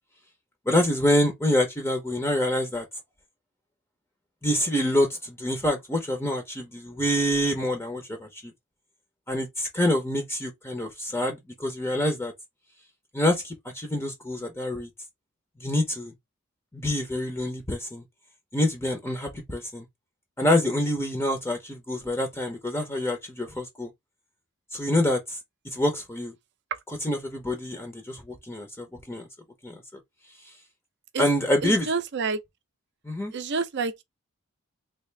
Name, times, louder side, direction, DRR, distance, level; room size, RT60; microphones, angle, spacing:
voice 1, 0.7-2.8 4.4-8.5 9.3-12.3 13.1-14.9 15.6-16.1 16.7-18.0 18.5-19.8 20.4-23.9 24.7-25.4 25.6-26.3 26.9-29.3 29.6-29.8 30.4-30.5 31.2-31.9 33.0-33.3, left 1 dB, 10° left, 0.6 m, -26 dB
voice 2, 31.6-32.4 33.3-34.0, right 4 dB, 50° right, 0.5 m, -28 dB
3.4 x 2.4 x 3.2 m
head